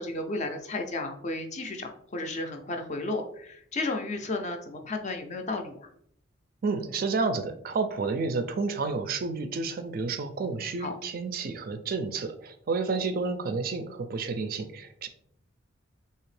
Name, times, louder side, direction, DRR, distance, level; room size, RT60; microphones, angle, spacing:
voice 1, 0.0-5.9 10.8-10.9, left 2 dB, 35° left, 4 dB, 0.4 m, -33 dB
voice 2, 6.6-15.1, right 4 dB, 45° right, 9 dB, 0.3 m, -30 dB
3.4 x 2.8 x 3.2 m, 0.67 s
head